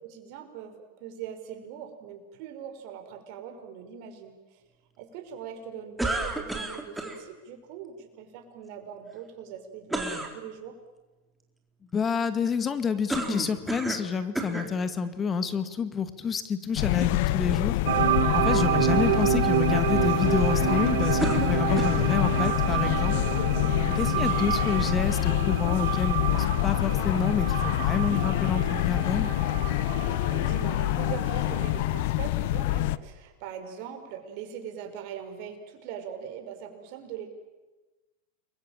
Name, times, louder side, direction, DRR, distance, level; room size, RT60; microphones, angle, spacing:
voice 1, 0.0-4.6 5.0-10.7 30.1-37.3, right 8 dB, 55° right, 5 dB, 5.8 m, -41 dB
sound 1, 6.0-7.2 9.9-10.3 13.1-14.1 14.4-14.7 15.5-15.6 21.2-22.1, right 2 dB, 5° right, 4.0 m, -31 dB
voice 2, 11.9-17.8 18.3-23.2 24.0-29.3, left 6 dB, 25° left, 11 dB, 2.3 m, -29 dB
sound 2, 16.8-33.0, left 16 dB, 60° left, 0.9 m, -26 dB
sound 3, 17.9-31.8, right 13 dB, 75° right, 1.6 m, -29 dB
29.5 x 22.5 x 9.1 m, 1.2 s
hypercardioid pair, 120°, 0 cm